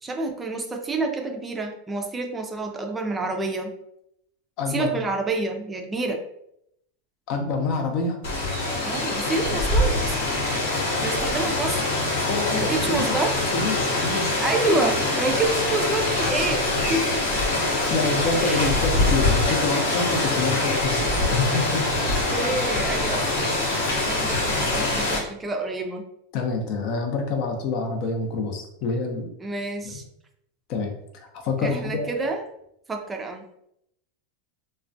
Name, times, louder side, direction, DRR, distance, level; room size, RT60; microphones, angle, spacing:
voice 1, 0.0-3.7 4.7-6.2 8.8-10.2 11.0-11.8 12.5-13.3 14.4-17.2 18.3-18.7 22.0-23.5 23.9-26.0 29.4-30.0 31.6-32.4 32.9-33.5, right 3 dB, 15° right, 3 dB, 0.4 m, -28 dB
voice 2, 4.6-5.0 7.3-8.2 12.3-13.2 13.5-14.4 17.9-22.0 26.3-29.3 29.8-30.0 30.7-32.3, left 4 dB, 55° left, 4 dB, 0.5 m, -27 dB
Rain, 8.2-25.2, left 2 dB, 75° left, 0.9 m, -24 dB
2.3 x 2.1 x 2.6 m, 0.76 s
supercardioid pair, 120°, 0 cm